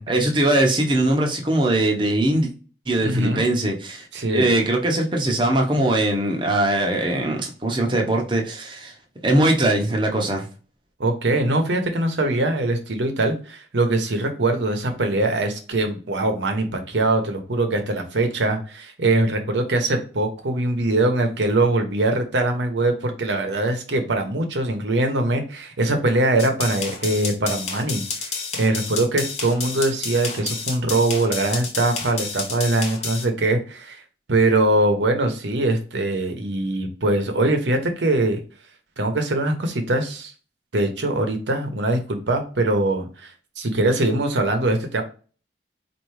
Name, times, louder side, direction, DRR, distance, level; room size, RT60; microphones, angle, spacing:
voice 1, 0.1-2.5 2.9-4.1 4.3-8.9 9.2-10.5, right 1 dB, 25° right, 1 dB, 0.8 m, -21 dB
voice 2, 3.0-3.4 4.1-4.5 11.0-34.0 34.3-38.4 39.0-40.3 40.7-45.0, right 2 dB, 85° right, 5 dB, 0.8 m, -22 dB
sound 1, 26.4-33.2, left 4 dB, 35° left, 0.8 m, -30 dB
4.5 x 2.6 x 3.1 m, 0.37 s
head